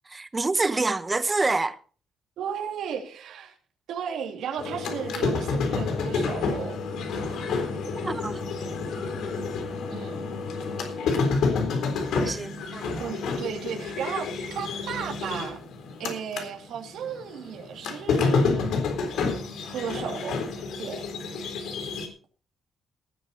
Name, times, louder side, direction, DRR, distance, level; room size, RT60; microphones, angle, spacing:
voice 1, 0.1-1.8 7.8-8.4 12.2-13.0, right 3 dB, 15° right, 0.8 m, -27 dB
voice 2, 2.4-3.5 3.9-6.8 9.9-10.2 13.0-15.6 16.0-18.7 19.7-20.4 20.8-21.1, right 8 dB, 80° right, 2.8 m, -34 dB
sound 1, 4.6-16.5 16.8-22.1, left 4 dB, 85° left, 3.8 m, -29 dB
18.5 x 10.0 x 4.2 m
cardioid pair, 170°, 0 cm